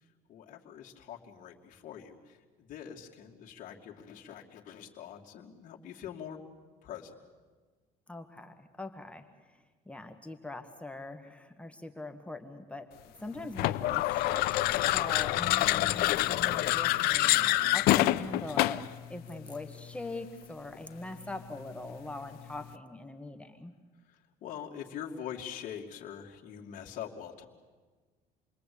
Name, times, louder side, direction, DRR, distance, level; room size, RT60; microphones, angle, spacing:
voice 1, 0.3-6.4 6.8-7.1 13.3-13.4 24.1-27.4, left 9 dB, 55° left, -2 dB, 2.5 m, -44 dB
voice 2, 8.1-9.6 9.9-14.5 14.9-23.7, left 2 dB, 5° left, 6 dB, 1.5 m, -42 dB
sound 1, 13.6-18.9, left 17 dB, 80° left, 0.7 m, -26 dB
28.0 x 22.0 x 8.6 m, 1.4 s
cardioid pair, 130°, 16 cm